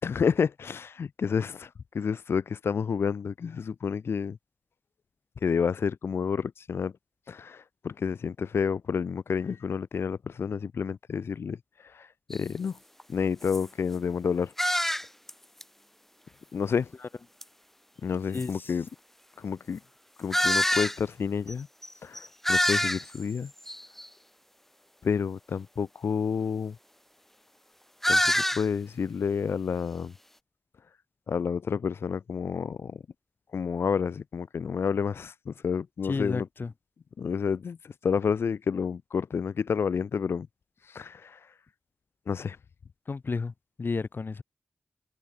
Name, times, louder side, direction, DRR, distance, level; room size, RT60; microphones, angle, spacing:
voice 1, 0.0-4.4 5.4-6.9 7.3-12.8 13.1-14.5 16.5-16.9 18.0-18.9 19.4-19.8 20.2-21.7 22.0-23.5 25.0-26.8 28.1-30.1 31.3-33.0 33.5-36.5 37.2-40.5 40.8-41.5 42.3-42.6, left 6 dB, 85° left, 3.9 m, -30 dB
sound 1, 12.3-12.4 13.0-13.1 13.4-13.6 14.6-15.3 15.6-15.7 17.4-17.5 18.3-18.4 20.3-21.0 21.5-21.6 21.8-21.9 22.1-23.2 23.7-24.1 28.0-28.7, equal, 5° left, 0.9 m, -26 dB
voice 2, 36.1-36.7 43.1-43.5 43.8-44.4, left 4 dB, 60° left, 3.1 m, -31 dB
cardioid pair, 50°, 4 cm